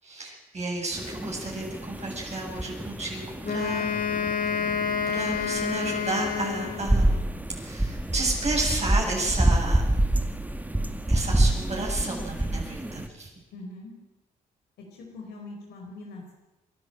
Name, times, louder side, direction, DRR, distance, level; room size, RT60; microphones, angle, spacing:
voice 1, 0.0-3.9 4.5-9.8 11.1-13.3, right 2 dB, 40° right, -2 dB, 7.8 m, -32 dB
sound 1, 0.9-13.1, right 1 dB, 10° right, 2.1 m, -28 dB
Wind instrument woodwind instrument, 3.4-7.2, left 7 dB, 60° left, 3.0 m, -29 dB
voice 2, 13.5-13.9 14.8-16.3, left 2 dB, 80° left, 0 dB, 4.5 m, -42 dB
27.0 x 11.0 x 9.0 m, 1.1 s
supercardioid pair, 55°, 17 cm